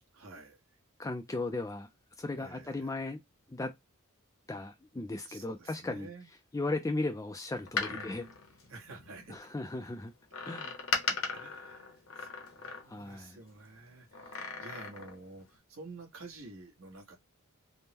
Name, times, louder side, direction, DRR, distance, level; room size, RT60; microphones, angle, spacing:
voice 1, 0.1-0.8 2.4-3.0 5.2-6.3 7.9-8.4 8.7-9.4 10.6-10.7 11.1-17.2, right 3 dB, 65° right, 1.2 m, -50 dB
voice 2, 1.0-1.9 2.2-3.2 3.5-3.7 4.5-6.1 6.5-8.2 9.3-10.1 10.4-10.8 12.8-13.4, left 2 dB, 15° left, 0.3 m, -36 dB
Door, 7.5-9.4 10.3-13.2 14.1-15.2 15.6-15.7, left 5 dB, 65° left, 0.9 m, -38 dB
3.5 x 2.1 x 2.8 m
head